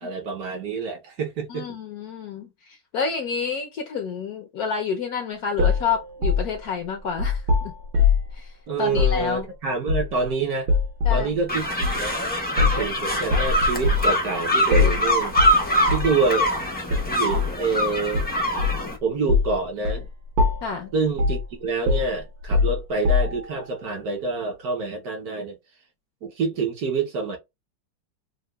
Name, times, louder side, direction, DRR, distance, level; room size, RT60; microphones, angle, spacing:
voice 1, 0.0-1.8 8.7-10.7 11.1-12.2 12.6-15.4 15.9-16.5 17.1-18.2 19.0-20.1 20.9-25.6 26.2-27.4, right 4 dB, 60° right, 1.2 m, -27 dB
voice 2, 1.5-7.7 8.3-9.5 11.0-11.3 20.6-20.9, left 6 dB, 70° left, 0.9 m, -29 dB
sound 1, 5.6-8.3 8.9-9.2 9.9-10.3 10.7-11.3 11.8-12.0 12.6-12.9 13.3-14.1 14.7-15.1 15.4-15.6 15.9-16.1 16.9-17.5 18.1-18.9 19.3-19.5 19.8-20.0 20.4-20.8 21.2-21.5 21.9-23.5, left 4 dB, 75° right, 1.6 m, -22 dB
sound 2, 11.5-19.0, equal, 15° left, 0.3 m, -24 dB
6.4 x 2.2 x 2.2 m
omnidirectional pair, 2.1 m